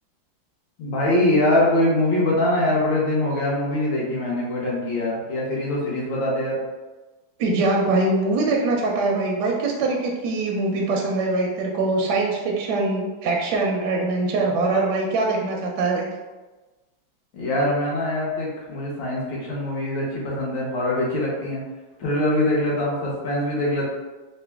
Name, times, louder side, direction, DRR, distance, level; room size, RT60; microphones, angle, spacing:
voice 1, 0.8-6.6 17.3-21.6 22.0-23.8, left 1 dB, 75° left, -4 dB, 1.7 m, -23 dB
voice 2, 7.4-16.1, right 3 dB, 70° right, -1 dB, 1.0 m, -23 dB
3.9 x 2.1 x 3.3 m, 1.2 s
omnidirectional pair, 2.1 m